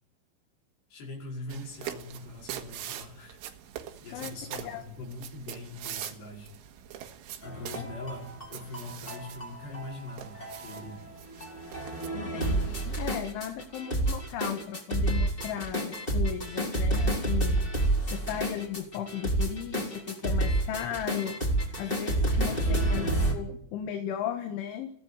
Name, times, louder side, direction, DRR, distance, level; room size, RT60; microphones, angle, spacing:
voice 1, 0.9-3.4 4.0-6.5 7.4-11.1 22.3-23.4, left 2 dB, 60° left, 1 dB, 7.0 m, -42 dB
sound 1, 1.5-12.1, right 11 dB, 85° right, 4.2 m, -43 dB
voice 2, 4.1-4.8 7.7-7.9 12.1-17.6 18.1-21.3 21.8-24.9, left 9 dB, 80° left, 6 dB, 4.2 m, -36 dB
sound 2, 7.4-23.3, right 1 dB, 10° left, 4.3 m, -29 dB
23.0 x 17.0 x 9.4 m, 0.71 s
omnidirectional pair, 5.4 m